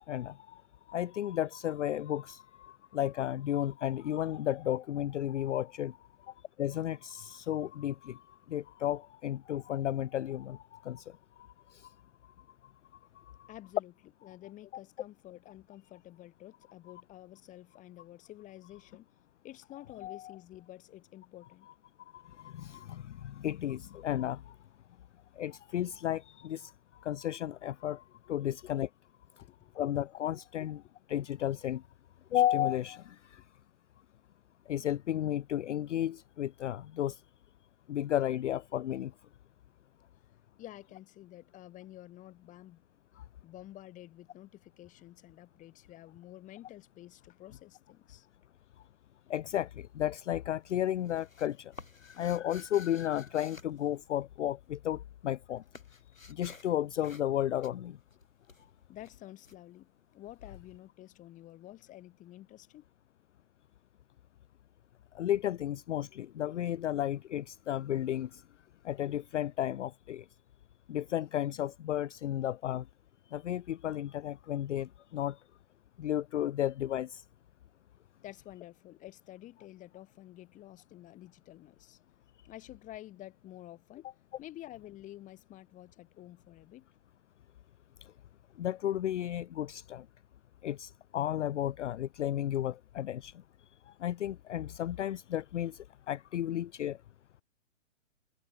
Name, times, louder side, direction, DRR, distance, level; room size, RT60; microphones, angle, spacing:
voice 1, 0.1-0.6 0.9-6.0 6.6-11.0 11.7-11.8 13.4-13.5 22.1-24.4 25.4-26.7 27.0-28.9 29.8-30.8 31.1-31.8 32.3-33.4 34.7-37.2 37.9-39.1 49.3-51.7 52.0-55.6 56.3-58.0 65.1-68.4 68.8-70.2 70.9-72.8 73.3-75.4 76.0-77.2 88.6-90.0 90.6-93.3 94.0-95.8 96.1-97.0, left 12 dB, 65° left, 0.5 m, -33 dB
voice 2, 13.5-13.9 14.2-19.1 19.4-21.7 22.8-22.9 28.5-28.6 29.4-29.7 30.6-30.9 40.6-42.8 43.4-48.3 58.9-62.8 78.2-82.0 82.4-86.9, left 14 dB, 20° left, 4.7 m, -50 dB
sound 1, 49.8-50.3 50.6-54.7 55.0-60.5, left 3 dB, 90° left, 4.7 m, -54 dB
figure-of-eight pair, 135°, 39 cm